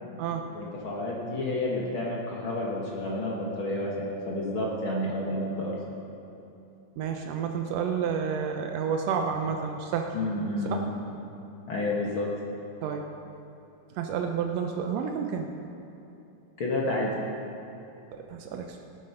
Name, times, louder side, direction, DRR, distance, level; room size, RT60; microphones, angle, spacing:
voice 1, 0.5-5.8 10.1-11.0 11.7-12.3 16.6-17.2, left 1 dB, 50° left, -4 dB, 1.6 m, -30 dB
voice 2, 7.0-10.2 10.6-10.8 12.8-13.0 13.9-15.5 18.3-18.8, right 7 dB, 85° right, 3 dB, 1.5 m, -30 dB
18.5 x 7.7 x 5.6 m, 2.8 s
omnidirectional pair, 3.8 m